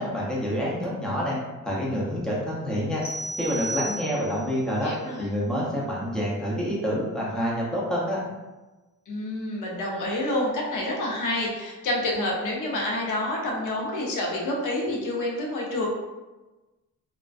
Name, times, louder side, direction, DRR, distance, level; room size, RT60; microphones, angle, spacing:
voice 1, 0.0-1.4 1.6-3.0 3.4-4.9 5.2-8.2, equal, ahead, -6 dB, 0.4 m, -27 dB
sound 1, 3.0-4.5, right 1 dB, 45° left, 1.0 m, -33 dB
voice 2, 4.8-5.3 9.1-15.9, left 1 dB, 75° left, -2 dB, 0.6 m, -28 dB
2.4 x 2.2 x 2.3 m, 1.2 s
wide cardioid pair, 175°, 32 cm